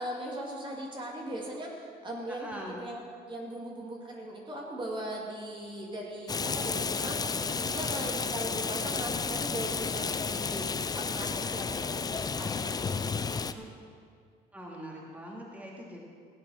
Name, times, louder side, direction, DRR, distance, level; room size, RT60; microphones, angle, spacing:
voice 1, 0.0-2.5 2.8-13.3, right 1 dB, 30° right, -2 dB, 2.5 m, -39 dB
voice 2, 2.3-2.8 7.7-8.1 13.5-13.6 14.5-16.0, equal, 10° right, -2 dB, 2.5 m, -43 dB
Rain, 6.3-13.5, left 5 dB, 25° left, 0.6 m, -32 dB
16.0 x 8.6 x 6.4 m, 2.2 s
cardioid pair, 110°, 17 cm